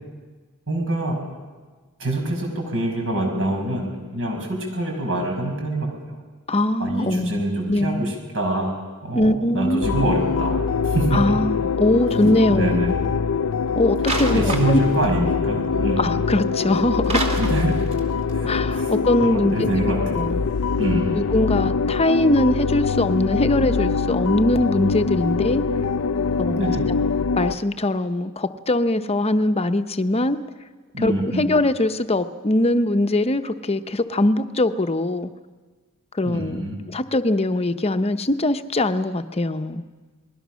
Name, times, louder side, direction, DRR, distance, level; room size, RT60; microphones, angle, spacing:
voice 1, 0.7-1.2 2.0-5.9 6.8-8.7 9.0-10.6 10.8-11.2 12.5-12.9 14.3-16.0 17.4-17.8 18.3-18.9 19.2-20.3 20.8-21.2 26.5-26.9 30.9-31.4 36.2-36.8, right 1 dB, 60° right, 1 dB, 6.2 m, -25 dB
voice 2, 6.5-7.4 7.7-8.1 9.1-10.1 11.1-13.0 13.7-14.8 16.0-17.4 18.5-20.4 21.1-25.6 26.4-26.7 27.4-30.4 31.0-35.3 36.1-36.6 36.9-39.8, left 1 dB, 30° left, 9 dB, 0.9 m, -22 dB
sound 1, 9.8-27.5, left 5 dB, 70° left, 0.6 m, -23 dB
sound 2, 12.1-12.3 14.0-15.0 17.0-18.0 18.3-18.4, right 2 dB, 30° right, 2.9 m, -28 dB
29.5 x 21.0 x 6.3 m, 1.4 s
head